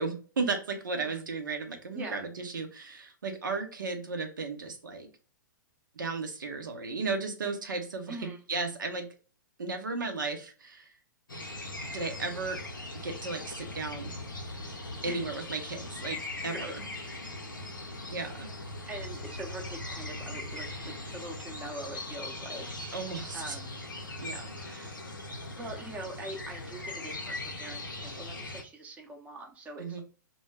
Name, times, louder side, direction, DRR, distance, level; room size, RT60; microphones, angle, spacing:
voice 1, 0.0-5.1 6.0-9.1 9.6-10.9 11.8-12.6 13.0-14.1 15.0-16.7 18.1-18.5 22.9-23.6 24.2-25.0 29.8-30.0, right 4 dB, 75° right, 5 dB, 0.6 m, -35 dB
voice 2, 1.9-2.2 8.1-8.4 15.0-15.3 16.4-16.7 17.3-17.5 18.9-22.7 23.3-23.6 25.6-30.0, right 2 dB, 15° right, 1 dB, 0.6 m, -43 dB
sound 1, 11.3-28.6, left 2 dB, 85° left, 0.7 m, -40 dB
2.2 x 2.1 x 3.3 m, 0.37 s
figure-of-eight pair, 110°, 11 cm